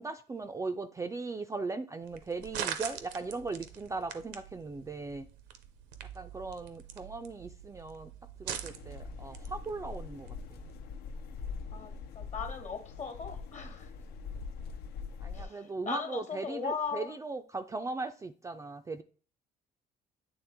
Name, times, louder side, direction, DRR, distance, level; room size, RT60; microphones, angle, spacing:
voice 1, 0.0-5.3 6.1-8.1 8.4-10.4 15.2-19.0, right 3 dB, 20° right, 0.3 m, -38 dB
sound 1, 2.0-10.8, right 9 dB, 90° right, 0.7 m, -44 dB
sound 2, 8.6-15.4, left 5 dB, 70° left, 0.5 m, -43 dB
voice 2, 11.7-13.9 15.3-17.1, left 5 dB, 45° left, 1.2 m, -38 dB
8.7 x 3.3 x 3.4 m
cardioid pair, 110°, 17 cm